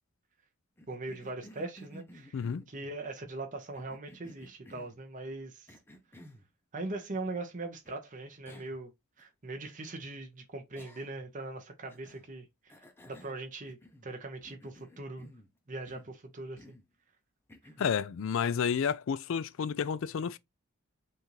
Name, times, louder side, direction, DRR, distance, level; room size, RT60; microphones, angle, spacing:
Cough, 0.8-3.0 3.7-5.0 5.7-6.5 7.9-8.0 8.5-8.8 9.2-9.3 10.8-11.3 11.9-12.3 12.7-14.1 14.4-15.5 15.9-16.2 16.6-16.9 17.5-18.0, equal, 10° left, 0.6 m, -54 dB
voice 1, 0.9-5.7 6.7-8.9 9.2-12.7 13.1-15.3 15.7-16.8, right 2 dB, 35° right, 0.8 m, -41 dB
voice 2, 2.3-2.6 17.8-20.4, left 7 dB, 60° left, 0.3 m, -31 dB
5.5 x 2.5 x 3.1 m
head